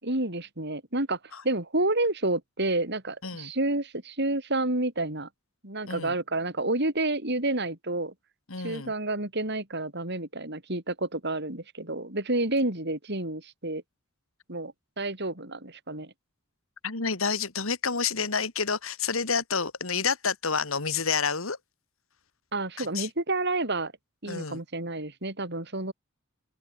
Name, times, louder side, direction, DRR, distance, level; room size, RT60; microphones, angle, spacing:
voice 1, 0.0-1.2 1.4-5.3 5.6-8.1 8.6-13.8 14.5-16.1 22.5-23.9 24.2-25.9, right 2 dB, 55° right, 6.5 m, -29 dB
voice 2, 5.8-6.1 8.5-8.9 16.8-21.6 22.8-23.1 24.3-24.6, left 5 dB, 75° left, 2.4 m, -29 dB
open air
head